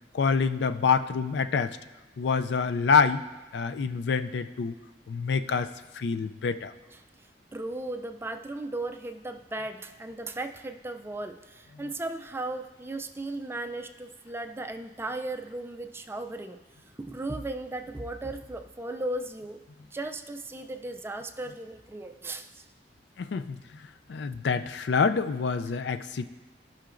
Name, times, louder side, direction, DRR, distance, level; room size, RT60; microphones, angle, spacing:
voice 1, 0.1-1.8 2.2-3.2 3.5-4.7 5.1-5.7 5.9-6.7 23.2-23.6 24.1-26.2, left 5 dB, 70° left, 10 dB, 0.4 m, -26 dB
voice 2, 7.5-16.6 17.0-19.6 19.9-22.5 25.9-26.0, right 2 dB, 15° right, 7 dB, 0.3 m, -36 dB
16.0 x 5.7 x 2.5 m, 1.1 s
head